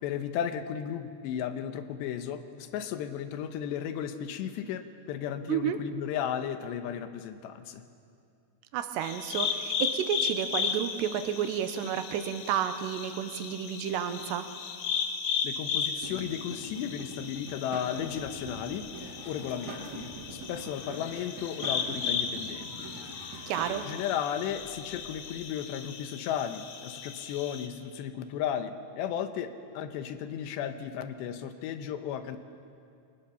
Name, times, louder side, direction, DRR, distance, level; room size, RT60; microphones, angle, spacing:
voice 1, 0.0-7.8 15.4-22.9 23.2-23.5 23.9-32.4, left 9 dB, 85° left, 9 dB, 3.2 m, -35 dB
voice 2, 8.7-14.5 23.5-23.9, right 9 dB, 85° right, 9 dB, 3.1 m, -31 dB
sound 1, 9.0-27.7, left 6 dB, 65° left, 1.8 m, -36 dB
sound 2, 16.0-23.8, right 2 dB, 50° right, 3.0 m, -44 dB
sound 3, 18.1-25.5, left 1 dB, 30° left, 4.7 m, -52 dB
24.5 x 19.0 x 7.0 m, 2.4 s
omnidirectional pair, 4.9 m